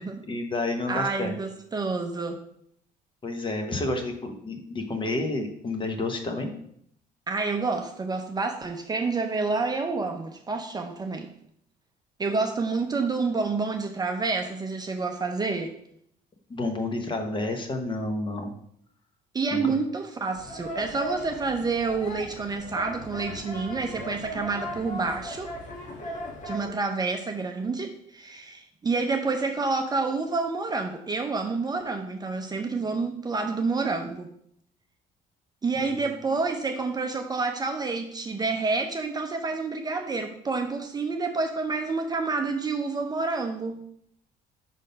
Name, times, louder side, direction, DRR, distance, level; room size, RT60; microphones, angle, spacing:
voice 1, 0.3-1.4 3.2-6.5 16.5-18.5 19.5-19.6 35.8-36.1, left 2 dB, 30° left, 5 dB, 1.0 m, -30 dB
voice 2, 0.9-2.4 7.3-11.3 12.2-15.8 19.3-25.5 26.4-34.3 35.6-43.8, right 4 dB, 25° right, 4 dB, 0.6 m, -28 dB
sound 1, 20.4-26.7, equal, 45° left, 1.3 m, -37 dB
5.5 x 3.7 x 5.1 m, 0.69 s
cardioid pair, 110°, 17 cm